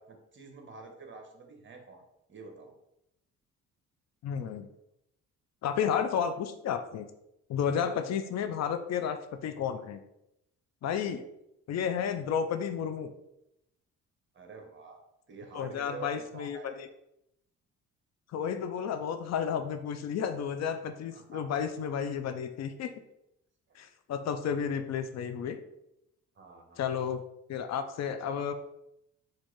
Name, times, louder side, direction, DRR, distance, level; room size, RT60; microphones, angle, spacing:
voice 1, 0.0-2.0 2.3-2.7 10.8-11.2 14.3-15.0 15.3-16.8 21.1-21.4 26.4-26.9, right 4 dB, 40° right, 4 dB, 1.0 m, -48 dB
voice 2, 4.2-4.7 5.6-7.1 7.5-10.0 10.8-11.2 11.7-13.1 15.5-16.9 18.3-22.9 23.8-25.6 26.8-27.2 27.5-28.5, left 7 dB, 60° left, 9 dB, 0.5 m, -32 dB
4.5 x 2.5 x 4.5 m, 0.83 s
cardioid pair, 90°, 30 cm